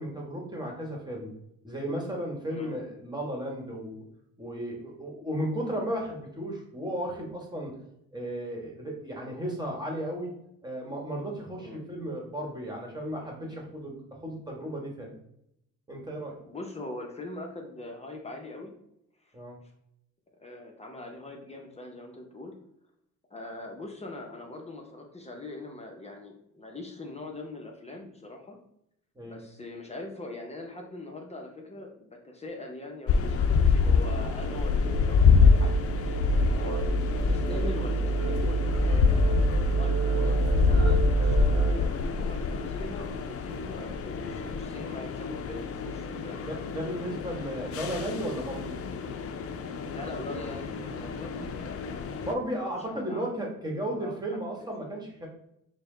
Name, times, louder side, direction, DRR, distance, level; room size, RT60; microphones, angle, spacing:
voice 1, 0.0-1.3 1.6-4.0 4.4-7.8 8.1-10.3 10.6-15.1 15.9-16.4 19.3-19.6 29.1-29.4 46.5-48.8 51.3-51.5 52.2-55.3, right 1 dB, 15° right, 0 dB, 1.3 m, -34 dB
voice 2, 16.5-18.7 19.2-19.3 20.4-22.6 23.3-28.6 29.2-36.8 37.2-39.4 39.8-46.5 49.9-53.3 53.9-54.2 54.6-54.7, left 2 dB, 20° left, 1 dB, 0.8 m, -42 dB
sound 1, 33.1-52.3, left 5 dB, 50° left, 0.5 m, -27 dB
sound 2, 33.7-41.7, right 4 dB, 55° right, 0.8 m, -28 dB
5.0 x 2.2 x 3.8 m, 0.77 s
cardioid pair, 90°, 30 cm